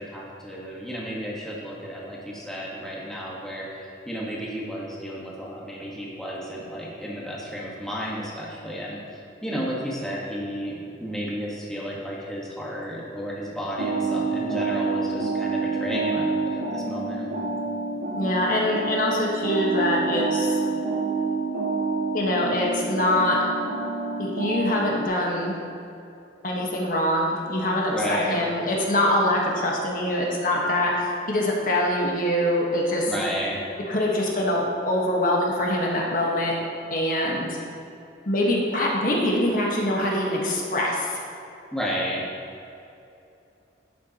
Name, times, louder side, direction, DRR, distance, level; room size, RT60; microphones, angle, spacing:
voice 1, 0.0-17.3 27.9-28.4 33.1-33.6 41.7-42.2, equal, 5° left, -5 dB, 1.3 m, -32 dB
sound 1, 13.8-25.1, right 3 dB, 75° right, 1.9 m, -27 dB
voice 2, 18.1-20.6 22.1-23.4 24.2-25.5 26.4-33.1 33.9-36.5 36.9-37.6 38.3-41.1, left 1 dB, 50° left, -2 dB, 1.3 m, -24 dB
11.0 x 8.3 x 2.9 m, 2.7 s
head